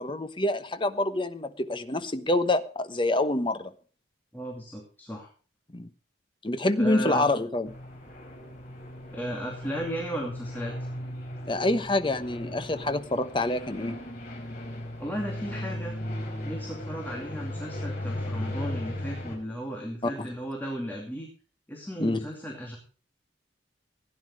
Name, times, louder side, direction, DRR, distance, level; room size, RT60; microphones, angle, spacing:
voice 1, 0.0-3.7 5.7-5.9 6.4-7.7 11.5-14.0 20.0-20.3 22.0-22.2, left 2 dB, 25° left, 10 dB, 1.0 m, -27 dB
voice 2, 4.3-5.3 6.8-7.3 9.1-10.9 15.0-16.0 16.4-21.3 21.7-22.8, equal, 10° left, 0 dB, 2.6 m, -35 dB
sound 1, 7.6-19.4, left 1 dB, 50° left, 4.4 m, -37 dB
16.0 x 10.5 x 4.9 m, 0.38 s
head